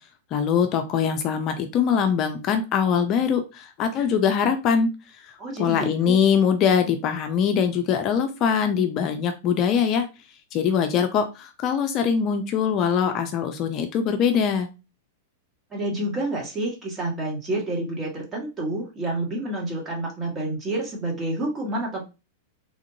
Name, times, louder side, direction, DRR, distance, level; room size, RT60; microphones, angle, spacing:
voice 1, 0.3-4.9 5.2-5.3 5.6-10.1 10.5-14.7, left 7 dB, 40° left, 6 dB, 0.5 m, -22 dB
voice 2, 5.4-6.2 15.7-22.0, right 1 dB, 25° right, -2 dB, 1.6 m, -29 dB
3.4 x 2.5 x 2.6 m, 0.28 s
hypercardioid pair, 100°, 0 cm